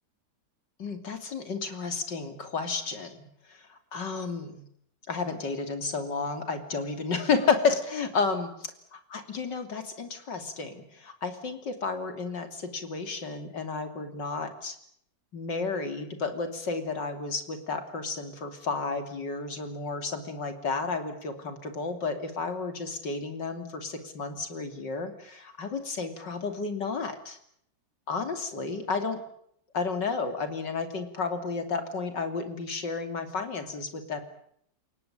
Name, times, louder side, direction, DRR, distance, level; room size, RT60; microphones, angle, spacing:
voice 1, 0.8-4.6 5.1-8.5 8.9-14.8 15.3-27.4 28.1-29.2 29.7-34.2, left 4 dB, 80° left, 8 dB, 3.6 m, -32 dB
30.0 x 18.0 x 8.8 m, 0.69 s
omnidirectional pair, 1.9 m